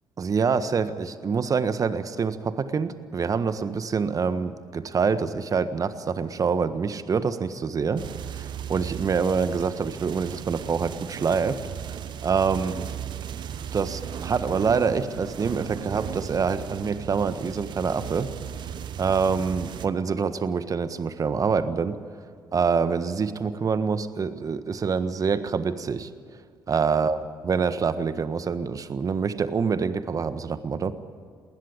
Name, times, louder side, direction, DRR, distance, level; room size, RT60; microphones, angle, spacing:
voice 1, 0.2-11.6 12.2-12.7 13.7-18.3 19.0-22.0 22.5-26.1 26.7-27.2 27.4-30.9, right 5 dB, 40° right, 12 dB, 1.5 m, -26 dB
sound 1, 8.0-19.9, right 9 dB, 55° right, 1.2 m, -36 dB
20.0 x 19.5 x 8.9 m, 2.1 s
hypercardioid pair, 50°, 9 cm